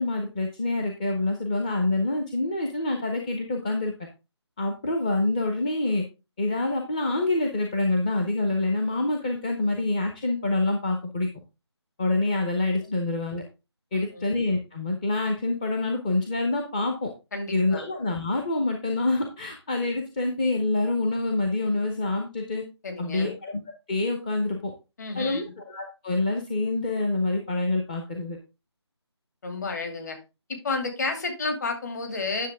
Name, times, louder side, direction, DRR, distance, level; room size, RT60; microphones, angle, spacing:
voice 1, 0.0-3.9 4.6-6.0 6.4-11.3 12.0-13.4 13.9-17.1 17.5-22.6 23.0-23.5 23.9-24.7 25.1-28.4, left 2 dB, 20° left, 3 dB, 0.8 m, -26 dB
voice 2, 17.3-17.9 22.8-23.3 25.0-25.5 29.4-30.2 30.5-32.5, left 3 dB, 40° left, 4 dB, 2.4 m, -31 dB
10.0 x 6.7 x 3.5 m, 0.27 s
figure-of-eight pair, 165°, 15 cm